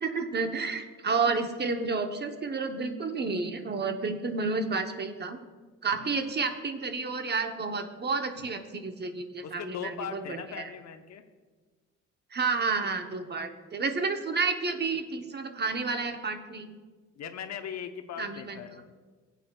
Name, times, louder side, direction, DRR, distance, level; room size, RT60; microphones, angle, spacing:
voice 1, 0.0-5.4 5.8-10.7 12.3-16.8 18.2-18.6, right 4 dB, 35° right, 6 dB, 0.9 m, -31 dB
voice 2, 9.4-11.2 17.2-18.8, left 8 dB, 65° left, 7 dB, 0.8 m, -39 dB
17.0 x 8.2 x 2.3 m, 1.4 s
cardioid pair, 90°, 30 cm